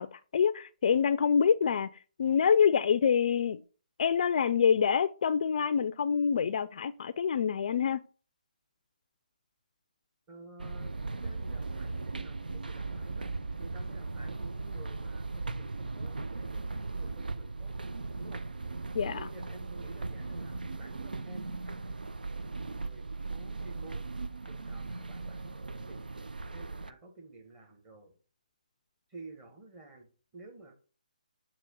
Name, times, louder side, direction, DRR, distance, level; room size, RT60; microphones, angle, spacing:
voice 1, 0.0-1.9 2.2-3.6 4.0-8.0 18.9-19.2, left 7 dB, 55° left, 0.3 m, -26 dB
voice 2, 10.3-13.3 13.6-17.7 18.2-18.4 19.1-21.8 22.6-24.0 24.5-26.0 26.5-28.1 29.1-30.1 30.3-30.7, right 3 dB, 20° right, 1.7 m, -51 dB
sound 1, 10.6-26.9, right 3 dB, 90° right, 0.4 m, -38 dB
7.5 x 2.9 x 5.3 m
hypercardioid pair, 150°, 5 cm